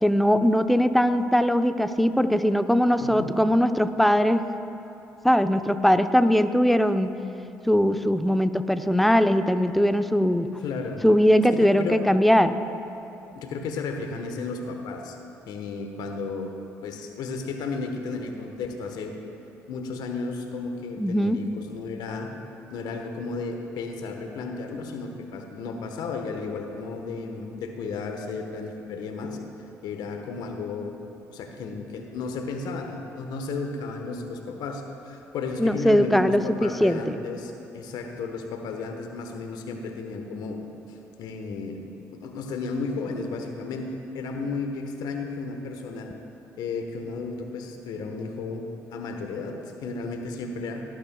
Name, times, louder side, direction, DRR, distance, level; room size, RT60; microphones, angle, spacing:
voice 1, 0.0-4.5 5.2-7.1 7.7-10.5 11.0-12.5 21.0-21.4 35.6-37.2, equal, ahead, 9 dB, 0.6 m, -20 dB
voice 2, 3.0-3.3 10.6-11.0 11.5-12.0 13.3-15.2 15.5-16.5 16.8-19.1 19.7-22.3 22.7-29.4 29.8-30.9 31.3-40.6 40.9-46.1 46.6-48.6 48.9-50.8, left 4 dB, 65° left, 4 dB, 1.2 m, -33 dB
18.5 x 11.5 x 2.3 m, 2.9 s
hypercardioid pair, 50°, 8 cm